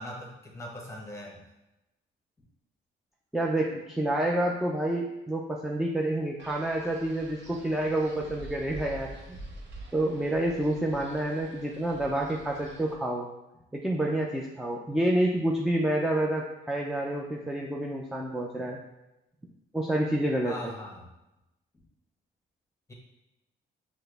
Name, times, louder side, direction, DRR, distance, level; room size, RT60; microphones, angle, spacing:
voice 1, 0.0-1.4 20.4-21.1 22.9-23.0, left 1 dB, 15° left, -1 dB, 1.1 m, -40 dB
voice 2, 3.3-9.4 9.9-13.3 13.8-18.8 19.7-20.5, right 1 dB, ahead, -1 dB, 0.4 m, -28 dB
Wind, 6.4-13.0, right 2 dB, 65° right, 0.7 m, -47 dB
5.6 x 2.1 x 3.3 m, 0.95 s
cardioid pair, 90°, 20 cm